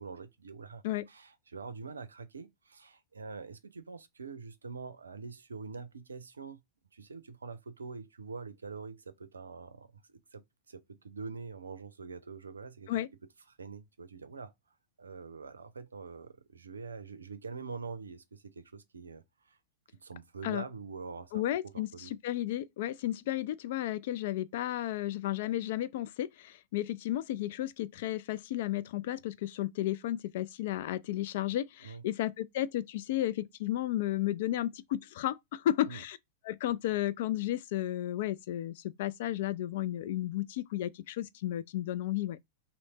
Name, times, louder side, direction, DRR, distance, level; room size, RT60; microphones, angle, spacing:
voice 1, 0.0-6.6 6.9-9.9 10.3-13.0 13.5-14.5 15.0-19.6 20.0-22.1 31.8-32.0 35.9-36.0, right 4 dB, 75° right, 0.5 m, -45 dB
voice 2, 21.3-36.2 36.4-42.4, left 13 dB, 55° left, 0.3 m, -33 dB
3.1 x 2.9 x 3.8 m
figure-of-eight pair, 90°, 0 cm